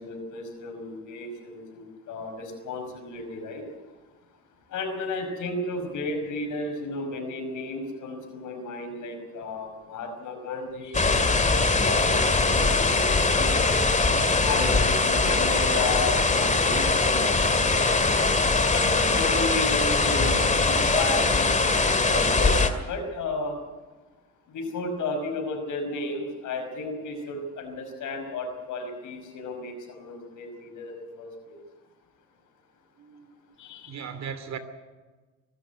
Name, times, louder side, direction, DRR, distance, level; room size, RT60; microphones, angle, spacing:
voice 1, 0.0-3.6 4.7-11.1 11.6-13.8 14.4-18.0 18.7-23.6 24.5-31.6 33.6-34.0, left 3 dB, 80° left, 5 dB, 5.4 m, -33 dB
sound 1, 10.9-22.7, left 3 dB, 25° left, 2.2 m, -22 dB
voice 2, 33.0-33.5 33.9-34.6, right 7 dB, 60° right, 11 dB, 2.8 m, -37 dB
24.5 x 12.5 x 9.3 m, 1.3 s
cardioid pair, 90°, 30 cm